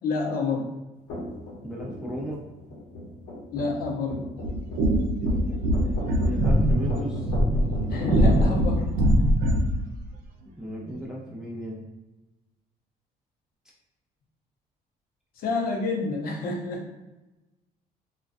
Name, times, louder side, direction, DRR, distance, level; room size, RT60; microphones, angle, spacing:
voice 1, 0.0-0.7 3.5-4.2 7.9-8.9 15.4-16.8, left 3 dB, 60° left, 0 dB, 0.7 m, -28 dB
sound 1, 1.1-8.6, left 1 dB, 90° left, 0.9 m, -37 dB
voice 2, 1.6-2.4 6.2-7.3 10.6-11.9, equal, 5° right, -3 dB, 0.5 m, -35 dB
sound 2, 4.4-9.8, equal, 60° right, 0.5 m, -22 dB
2.3 x 2.2 x 2.4 m, 1.0 s
cardioid pair, 110°, 17 cm